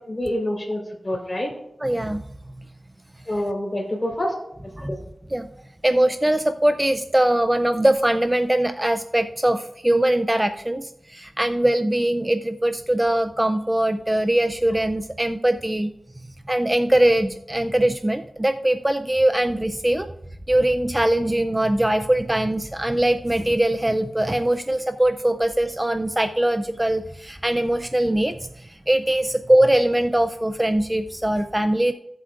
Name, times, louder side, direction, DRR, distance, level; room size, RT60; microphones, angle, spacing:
voice 1, 0.1-1.5 3.3-4.3 4.9-5.0, left 1 dB, 35° left, 0 dB, 4.2 m, -26 dB
voice 2, 1.8-2.2 4.7-4.9 5.3-5.5 5.8-15.9 16.5-20.1 20.5-31.9, right 1 dB, 20° right, 9 dB, 0.5 m, -21 dB
15.5 x 7.7 x 2.5 m, 0.81 s
cardioid pair, 50°, 0 cm